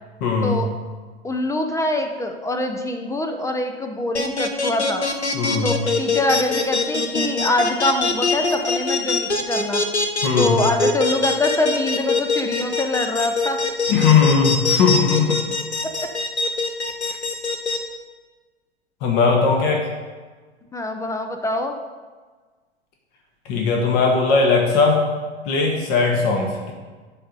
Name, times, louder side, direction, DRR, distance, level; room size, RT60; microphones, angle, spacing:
voice 1, 0.2-0.6 5.3-5.8 10.2-10.7 13.9-15.4 19.0-19.8 23.4-25.0 25.4-26.7, left 5 dB, 40° left, 1 dB, 1.4 m, -18 dB
voice 2, 1.2-5.1 5.6-9.8 10.4-13.6 15.8-15.9 17.0-17.2 19.6-19.7 20.7-21.8, left 1 dB, 10° left, 5 dB, 0.6 m, -24 dB
sound 1, 4.1-17.8, left 4 dB, 90° left, 0.9 m, -22 dB
11.5 x 3.9 x 5.2 m, 1.4 s
figure-of-eight pair, 90°, 33 cm